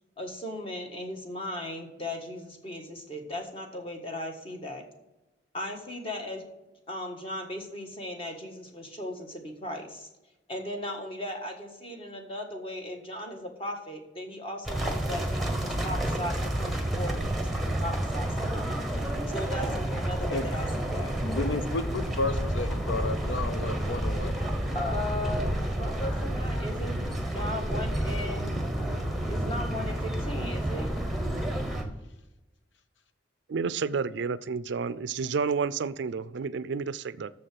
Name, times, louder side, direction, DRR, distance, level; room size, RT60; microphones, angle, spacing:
voice 1, 0.2-4.8 5.5-6.4 6.9-10.1 10.5-18.7 19.3-21.1 24.7-28.6 29.3-30.9, left 1 dB, 30° left, 3 dB, 1.5 m, -37 dB
sound 1, 14.7-31.8, right 1 dB, ahead, 1.1 m, -30 dB
voice 2, 21.2-24.3, left 2 dB, 80° left, 11 dB, 0.7 m, -32 dB
voice 3, 33.5-37.3, right 5 dB, 70° right, 17 dB, 0.4 m, -30 dB
7.0 x 6.6 x 7.6 m, 0.98 s
head